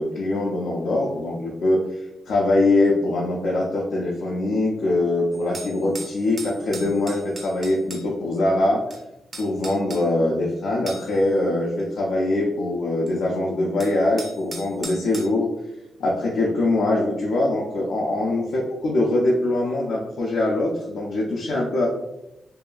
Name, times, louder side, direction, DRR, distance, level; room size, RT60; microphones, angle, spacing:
voice 1, 0.0-8.8 9.4-15.5 16.0-22.0, left 2 dB, 80° left, -3 dB, 0.4 m, -23 dB
sound 1, 5.3-8.0 8.9-9.0 9.3-10.0 10.9-11.3 11.8-11.9 13.1-13.2 13.8-15.3, right 2 dB, 45° right, 0.5 m, -37 dB
2.7 x 2.4 x 2.2 m, 0.90 s
cardioid pair, 90°, 0 cm